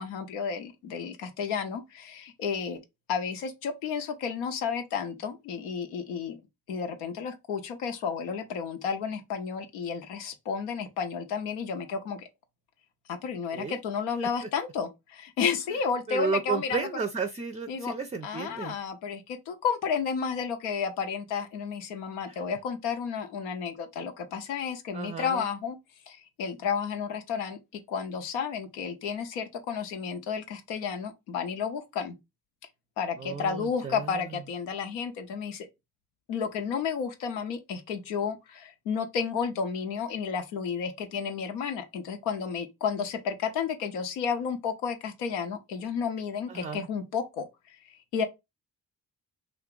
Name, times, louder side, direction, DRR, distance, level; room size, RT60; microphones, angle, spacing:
voice 1, 0.0-2.8 3.1-6.4 6.7-12.3 13.1-16.9 17.7-17.9 18.2-25.8 26.1-32.1 33.0-35.7 36.3-48.2, left 6 dB, 85° left, 0.6 m, -32 dB
voice 2, 16.1-18.8 22.3-22.4 24.9-25.5 33.2-34.3 46.5-46.9, right 5 dB, 15° right, 0.4 m, -33 dB
2.5 x 2.3 x 3.7 m
hypercardioid pair, 40°, 43 cm